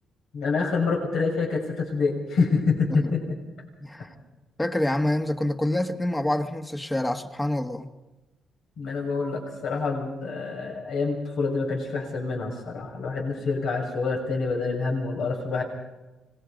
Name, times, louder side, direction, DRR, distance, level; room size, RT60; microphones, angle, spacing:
voice 1, 0.3-3.3 4.0-4.1 8.8-15.6, left 4 dB, 70° left, 6.6 m, -27 dB
voice 2, 3.8-4.1 4.6-7.9, left 1 dB, 10° left, 1.7 m, -27 dB
26.0 x 21.0 x 5.3 m
cardioid pair, 90°, 0 cm